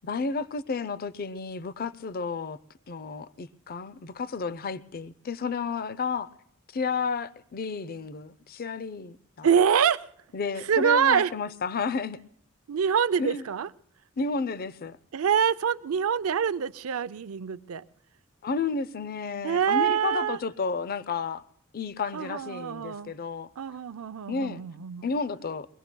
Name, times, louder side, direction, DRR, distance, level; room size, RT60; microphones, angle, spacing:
voice 1, 0.0-2.6 2.9-6.3 6.7-9.5 10.3-12.2 13.2-13.4 14.2-15.0 18.4-21.4 21.7-23.5 24.3-24.6 25.0-25.7, left 4 dB, 45° left, 0.5 m, -32 dB
voice 2, 9.4-10.1 10.7-11.3 12.7-13.7 15.1-17.8 19.4-20.4 22.1-23.1 23.6-25.0, right 7 dB, 80° right, 0.5 m, -25 dB
23.0 x 22.0 x 2.2 m
head